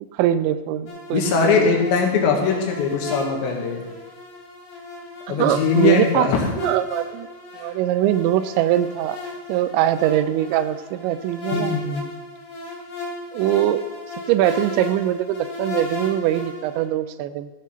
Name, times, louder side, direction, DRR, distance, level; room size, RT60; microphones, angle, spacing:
voice 1, 0.1-1.8 5.4-6.3 6.6-7.3 7.5-9.2 9.5-11.7 13.3-13.8 14.3-17.5, right 12 dB, 85° right, 12 dB, 2.9 m, -22 dB
sound 1, 0.9-16.9, left 2 dB, 50° left, 4.2 m, -35 dB
voice 2, 1.1-3.9 5.3-6.5 11.5-12.0, left 5 dB, 80° left, 1 dB, 3.9 m, -21 dB
14.0 x 7.8 x 5.6 m, 1.2 s
omnidirectional pair, 5.2 m